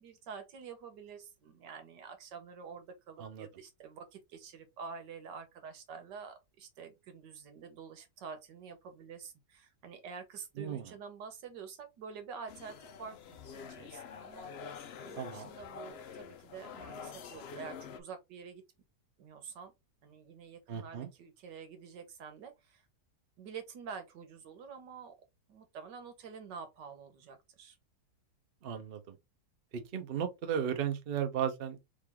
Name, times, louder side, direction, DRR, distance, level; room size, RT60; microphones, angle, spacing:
voice 1, 0.0-18.6 19.2-19.7 20.0-22.8 23.4-25.1 25.5-27.8, right 6 dB, 80° right, 1.7 m, -48 dB
voice 2, 10.6-10.9 15.2-15.5 20.7-21.1 28.6-29.2 29.7-31.8, right 8 dB, 45° right, 0.8 m, -35 dB
sound 1, 12.5-18.0, left 6 dB, 80° left, 0.5 m, -47 dB
3.8 x 3.2 x 3.5 m
omnidirectional pair, 1.8 m